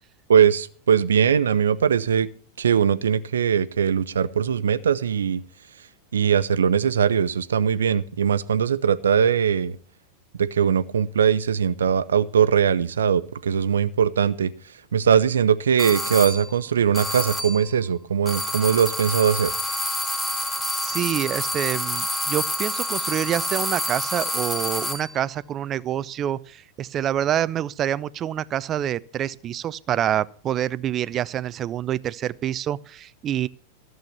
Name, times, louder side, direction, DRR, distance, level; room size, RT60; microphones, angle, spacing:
voice 1, 0.3-2.3 2.6-5.4 6.1-9.8 10.4-14.5 14.9-19.5, right 7 dB, 65° right, 0.7 m, -20 dB
sound 1, 15.8-16.5 16.9-17.7 18.3-25.1, left 1 dB, 10° left, 2.6 m, -28 dB
voice 2, 20.6-33.5, right 11 dB, 30° right, 0.5 m, -27 dB
14.5 x 7.8 x 6.9 m
figure-of-eight pair, 90°, 0 cm